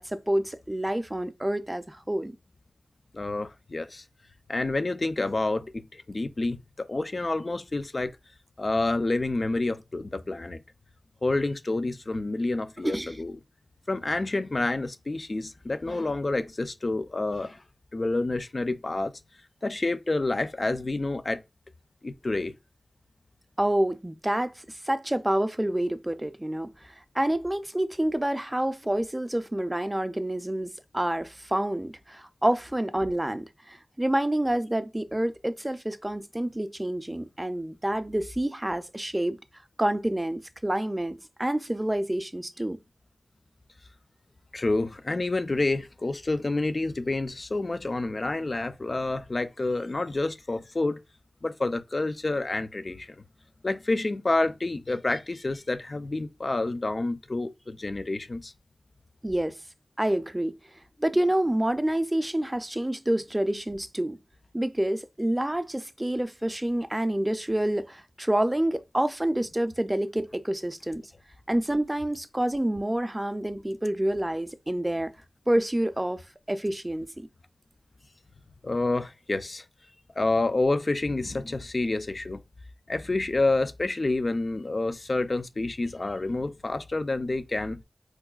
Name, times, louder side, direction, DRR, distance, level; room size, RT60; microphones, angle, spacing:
voice 1, 0.0-2.4 12.8-13.2 23.6-39.4 39.8-42.8 59.2-59.6 60.0-60.6 61.0-64.2 64.5-71.1 71.5-75.1 75.5-77.3, right 1 dB, 20° right, 0.4 m, -28 dB
voice 2, 3.1-4.0 4.5-8.2 8.6-10.6 11.2-13.4 13.9-17.6 17.9-19.1 19.6-21.4 22.0-22.5 44.5-51.0 51.4-53.2 53.6-58.5 78.6-79.6 80.2-82.4 82.9-87.8, left 2 dB, 50° left, 0.4 m, -28 dB
4.6 x 2.2 x 2.3 m
wide cardioid pair, 55°, 0 cm